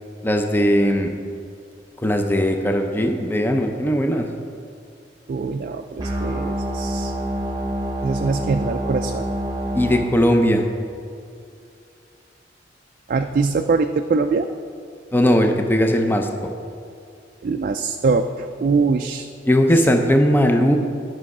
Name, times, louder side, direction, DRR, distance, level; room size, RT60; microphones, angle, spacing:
voice 1, 0.2-1.1 2.0-4.3 9.7-10.6 15.1-16.5 19.5-20.7, equal, 10° left, 4 dB, 0.5 m, -18 dB
voice 2, 5.3-7.1 8.0-9.3 13.1-14.5 17.4-19.3, right 4 dB, 50° right, 6 dB, 0.3 m, -23 dB
sound 1, 6.0-10.0, equal, 20° right, 1.0 m, -26 dB
10.0 x 6.2 x 4.8 m, 2.4 s
head